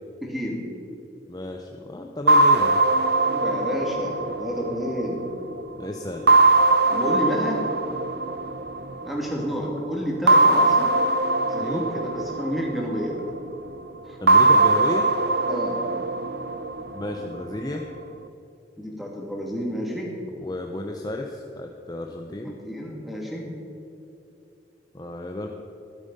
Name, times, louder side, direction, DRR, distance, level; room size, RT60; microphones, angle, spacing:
voice 1, 0.2-0.6 3.2-5.2 6.9-7.6 9.0-10.9 11.4-13.2 14.0-14.2 15.5-15.8 18.8-20.1 22.3-23.5, equal, ahead, -2 dB, 2.4 m, -30 dB
voice 2, 1.3-2.8 5.8-6.4 11.6-11.8 14.2-15.1 16.9-17.8 20.4-22.5 24.9-25.5, left 1 dB, 20° left, 2 dB, 0.7 m, -32 dB
sound 1, 2.3-5.6 6.3-9.2 10.3-13.4 14.3-17.4, right 2 dB, 60° right, 0.6 m, -21 dB
14.0 x 12.0 x 5.4 m, 2.7 s
head